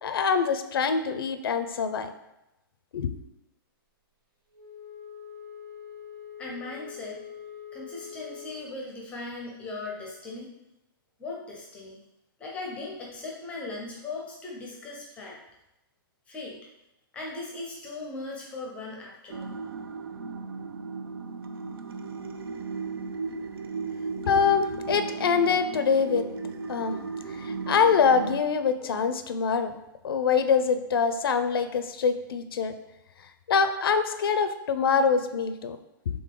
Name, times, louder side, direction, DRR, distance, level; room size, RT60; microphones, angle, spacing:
voice 1, 0.0-2.1 2.9-3.1 24.2-26.2 26.7-27.0 27.4-29.7 30.0-32.7 33.5-35.8, left 6 dB, 80° left, 10 dB, 0.5 m, -24 dB
Wind instrument woodwind instrument, 4.5-8.7, left 9 dB, 70° right, 1.2 m, -44 dB
voice 2, 6.4-7.2 7.7-10.5 11.2-12.0 12.4-15.4 16.3-16.6 17.1-19.6, left 3 dB, 10° left, -2 dB, 0.5 m, -38 dB
sound 1, 19.3-28.4, right 4 dB, 90° right, 0.5 m, -35 dB
3.8 x 3.5 x 3.7 m, 0.90 s
hypercardioid pair, 165°, 12 cm